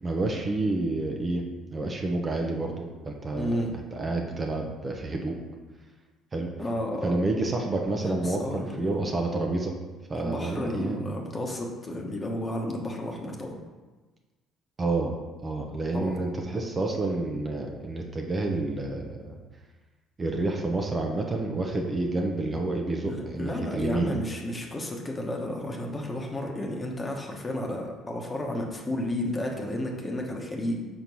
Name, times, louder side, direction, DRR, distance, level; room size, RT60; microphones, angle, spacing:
voice 1, 0.0-3.6 3.9-5.4 6.3-6.5 7.0-9.7 10.1-11.1 14.8-15.1 15.4-19.4 20.2-24.2, right 2 dB, 30° right, 1 dB, 0.9 m, -29 dB
voice 2, 3.3-3.7 6.6-7.1 8.0-8.9 10.1-13.6 15.9-16.2 23.1-30.8, left 1 dB, 25° left, 0 dB, 1.2 m, -32 dB
4.5 x 4.4 x 5.4 m, 1.3 s
supercardioid pair, 70°, 0 cm